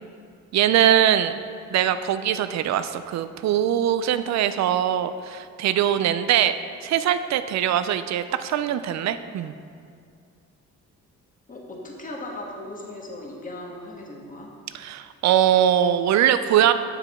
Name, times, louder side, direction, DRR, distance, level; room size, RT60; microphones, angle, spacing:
voice 1, 0.5-1.4 1.7-6.5 6.8-9.5 14.7-16.7, right 10 dB, 65° right, 12 dB, 0.4 m, -21 dB
voice 2, 11.5-14.5, left 1 dB, 25° left, -1 dB, 1.4 m, -37 dB
7.3 x 6.7 x 3.6 m, 2.3 s
cardioid pair, 90°, 30 cm